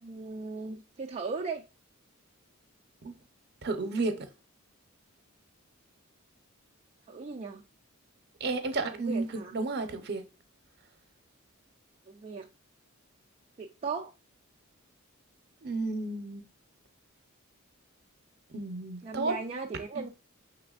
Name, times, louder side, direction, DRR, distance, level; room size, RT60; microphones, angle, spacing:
voice 1, 0.0-1.6 7.1-7.6 8.9-9.5 12.1-12.5 13.6-14.1 19.0-20.1, right 4 dB, 30° right, 0.4 m, -37 dB
voice 2, 3.6-4.3 8.4-10.2 15.6-16.4 18.5-19.3 19.9-20.0, right 3 dB, 50° right, 0.7 m, -32 dB
5.8 x 3.4 x 2.4 m
head